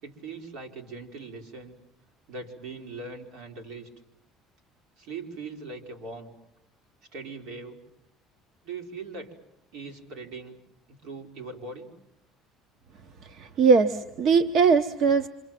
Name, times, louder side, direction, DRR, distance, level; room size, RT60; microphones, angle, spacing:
voice 1, 0.0-1.8 2.3-3.9 5.0-6.3 7.1-7.8 8.6-9.3 9.7-10.6 10.9-11.9, right 3 dB, 75° right, 3 dB, 4.5 m, -40 dB
voice 2, 13.4-15.3, right 5 dB, 45° right, 9 dB, 0.9 m, -20 dB
27.0 x 26.5 x 7.6 m, 0.82 s
cardioid pair, 160°, 0 cm